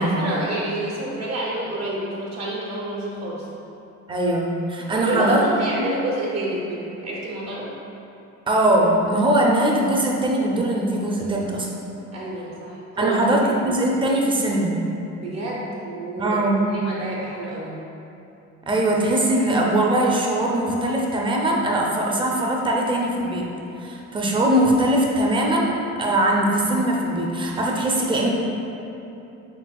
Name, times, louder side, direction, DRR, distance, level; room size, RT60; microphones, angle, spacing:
voice 1, 0.0-3.5 4.9-7.7 12.1-13.7 15.2-16.4 16.7-17.8, right 1 dB, 60° right, -5 dB, 0.9 m, -28 dB
voice 2, 4.1-5.4 5.8-5.9 8.5-11.7 13.0-14.7 16.2-16.8 18.7-23.5 23.8-25.7 26.0-28.3, right 1 dB, 15° right, -1 dB, 0.5 m, -21 dB
4.5 x 3.5 x 2.3 m, 2.8 s
cardioid pair, 90°, 30 cm